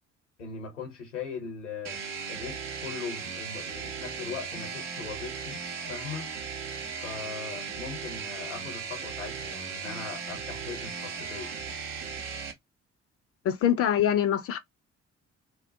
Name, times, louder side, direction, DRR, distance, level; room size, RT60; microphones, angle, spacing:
voice 1, 0.4-2.0 2.3-5.6 5.9-6.3 7.0-11.5, left 5 dB, 85° left, 0.9 m, -40 dB
sound 1, 1.8-12.5, right 5 dB, 75° right, 0.6 m, -37 dB
voice 2, 13.5-14.6, left 10 dB, 40° left, 0.5 m, -24 dB
2.3 x 2.0 x 2.7 m
figure-of-eight pair, 40°, 36 cm